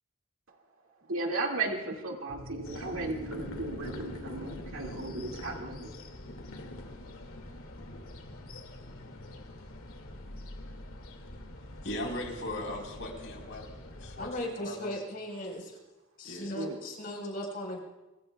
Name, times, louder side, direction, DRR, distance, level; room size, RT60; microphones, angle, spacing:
voice 1, 1.1-5.9 16.6-16.8, right 2 dB, 80° right, 1 dB, 2.0 m, -35 dB
sound 1, 2.3-6.5, right 1 dB, 60° right, 1.7 m, -47 dB
sound 2, 2.6-14.3, left 1 dB, 90° left, 2.1 m, -44 dB
voice 2, 11.8-13.7 14.0-14.9 16.2-16.6, left 1 dB, 70° left, 1 dB, 3.9 m, -38 dB
voice 3, 14.2-15.8 16.2-17.8, left 1 dB, 45° left, 0 dB, 4.2 m, -37 dB
24.0 x 24.0 x 2.3 m, 1.1 s
head